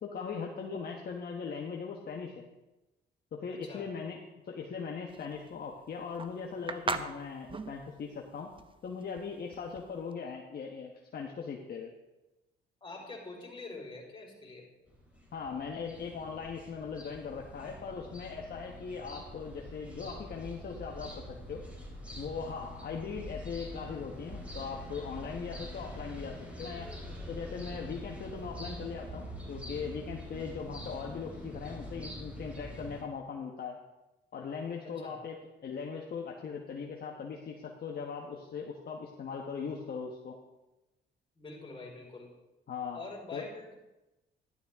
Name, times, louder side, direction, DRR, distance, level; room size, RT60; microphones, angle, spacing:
voice 1, 0.0-2.4 3.3-4.2 4.5-8.5 8.8-11.9 15.3-21.6 22.2-26.9 27.3-33.8 34.3-35.4 35.6-40.4 42.7-43.0 43.3-43.5, left 5 dB, 50° left, 0 dB, 1.3 m, -39 dB
voice 2, 3.5-3.9 12.8-14.7 34.8-35.2 41.4-42.3 42.9-43.8, left 3 dB, 25° left, -2 dB, 4.5 m, -45 dB
sound 1, 5.1-10.1, right 4 dB, 25° right, 0.7 m, -39 dB
sound 2, 14.9-33.0, equal, 5° right, 4.2 m, -45 dB
12.0 x 11.5 x 3.6 m, 1.0 s
cardioid pair, 90°, 20 cm